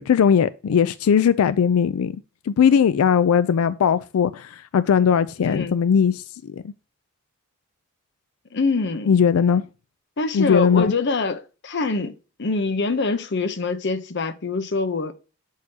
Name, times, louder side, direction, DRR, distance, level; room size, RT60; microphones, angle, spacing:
voice 1, 0.0-2.2 2.5-6.7 9.1-9.6 10.3-10.9, left 7 dB, 85° left, 0.4 m, -19 dB
voice 2, 5.4-5.8 8.5-9.2 10.2-15.1, left 3 dB, 55° left, 0.7 m, -25 dB
8.1 x 6.5 x 2.8 m
head